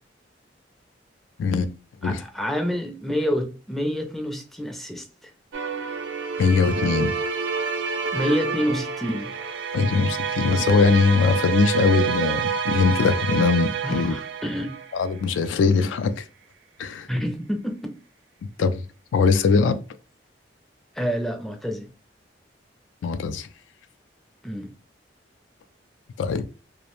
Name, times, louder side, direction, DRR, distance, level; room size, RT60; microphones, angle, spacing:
voice 1, 2.0-5.3 8.1-9.3 13.8-14.8 17.1-17.9 20.9-21.9 24.4-24.7, equal, ahead, 0.4 m, -28 dB
sound 1, 5.5-15.3, right 6 dB, 80° right, 0.4 m, -28 dB
voice 2, 6.4-7.1 9.7-14.1 14.9-16.2 16.8-17.1 18.6-18.8 19.1-19.8 23.0-23.5 26.2-26.5, left 4 dB, 85° left, 0.3 m, -21 dB
2.5 x 2.0 x 2.9 m
head